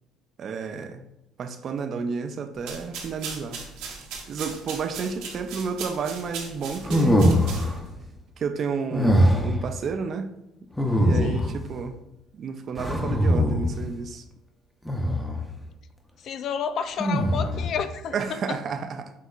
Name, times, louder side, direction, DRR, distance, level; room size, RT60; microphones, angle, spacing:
voice 1, 0.4-1.1 1.4-3.6 4.3-7.3 8.4-10.3 11.0-12.0 12.3-14.2 18.1-19.1, right 5 dB, 50° right, 0.4 m, -31 dB
sound 1, 2.6-7.9, right 5 dB, 80° right, 0.9 m, -38 dB
sound 2, 6.8-7.8 8.9-9.6 10.8-11.6 12.8-13.8 14.9-15.4 17.0-17.7, equal, 5° left, 0.6 m, -22 dB
voice 2, 11.2-11.5 16.2-18.1 18.5-18.6, left 6 dB, 55° left, 0.3 m, -30 dB
6.3 x 2.8 x 2.4 m
supercardioid pair, 90°, 0 cm